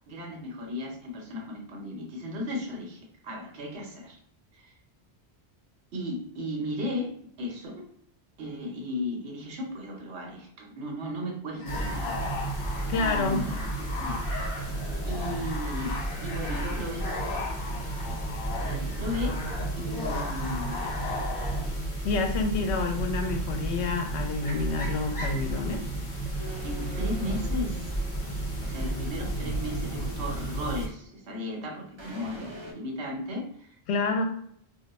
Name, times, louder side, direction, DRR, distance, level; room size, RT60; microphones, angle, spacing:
voice 1, 0.1-4.2 4.5-4.7 5.9-7.9 8.4-12.2 12.9-13.7 13.9-14.2 15.0-17.1 18.6-19.4 19.8-20.9 26.6-27.9 28.6-33.8, left 1 dB, 75° right, 0 dB, 1.0 m, -35 dB
sound 1, 11.5-21.7, left 3 dB, 55° left, 1.1 m, -37 dB
sound 2, 11.7-30.9, right 1 dB, 30° left, 0.8 m, -32 dB
voice 2, 12.9-13.4 22.0-25.8 33.9-34.2, left 3 dB, 75° left, 5 dB, 0.8 m, -28 dB
sound 3, 26.4-31.6 32.0-32.7, equal, 40° right, 0.4 m, -42 dB
2.4 x 2.2 x 3.9 m, 0.66 s
omnidirectional pair, 1.1 m